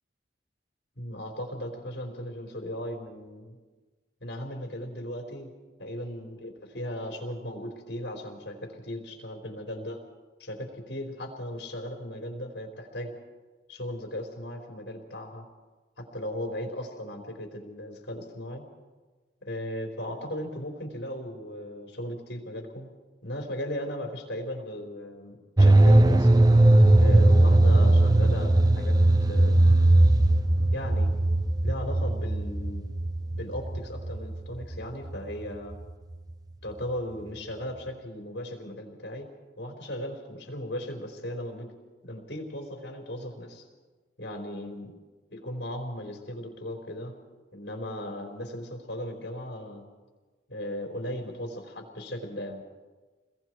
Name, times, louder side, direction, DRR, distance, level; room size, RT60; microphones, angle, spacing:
voice 1, 1.0-3.6 4.2-5.5 5.8-10.0 10.4-13.1 13.7-15.4 16.0-18.6 19.4-22.9 23.2-26.3 27.0-29.0 29.3-29.8 30.7-31.1 31.6-32.9 33.3-35.8 36.6-39.3 39.6-41.7 42.0-43.6 44.2-44.9 45.3-47.1 47.5-49.9 50.5-52.6, left 1 dB, 70° left, 2 dB, 4.4 m, -37 dB
sound 1, 25.6-35.5 35.7-35.8, right 1 dB, 20° right, 0.6 m, -20 dB
29.5 x 21.5 x 4.7 m, 1.3 s
head